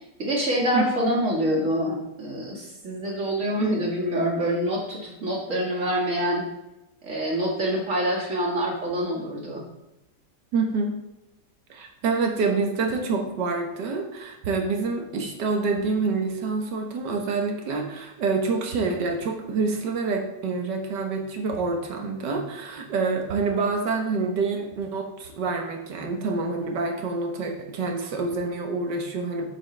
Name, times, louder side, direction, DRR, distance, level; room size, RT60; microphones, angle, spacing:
voice 1, 0.2-6.5 7.0-9.6, equal, 45° right, -3 dB, 2.2 m, -26 dB
voice 2, 0.7-1.1 10.5-11.0 11.7-29.5, right 4 dB, 80° right, 3 dB, 1.7 m, -27 dB
7.8 x 6.9 x 3.3 m, 0.96 s
omnidirectional pair, 1.9 m